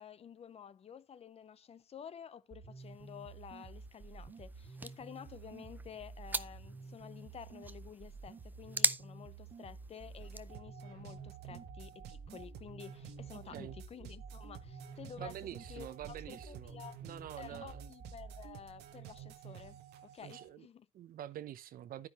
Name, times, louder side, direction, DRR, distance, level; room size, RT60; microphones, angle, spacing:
voice 1, 0.0-15.4 15.7-17.0 17.3-20.9, left 8 dB, 35° left, 0.5 m, -51 dB
sound 1, 2.5-18.5, right 4 dB, 40° right, 1.8 m, -51 dB
sound 2, 2.8-10.6, right 3 dB, 10° right, 0.5 m, -41 dB
sound 3, 10.2-20.5, right 12 dB, 80° right, 1.2 m, -52 dB
voice 2, 15.2-16.7 17.0-17.9 20.2-20.7 20.9-22.1, right 11 dB, 60° right, 0.8 m, -46 dB
10.5 x 9.7 x 3.0 m
cardioid pair, 110°, 17 cm